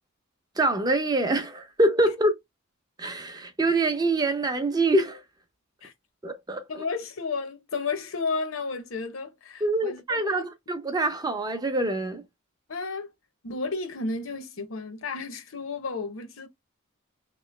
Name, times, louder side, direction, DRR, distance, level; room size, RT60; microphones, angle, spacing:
voice 1, 0.6-2.3 3.0-5.2 6.2-6.8 9.6-12.2, right 2 dB, 20° right, 0.6 m, -25 dB
voice 2, 6.7-10.5 12.7-13.1 13.4-16.5, left 4 dB, 70° left, 0.9 m, -32 dB
3.0 x 3.0 x 3.1 m
head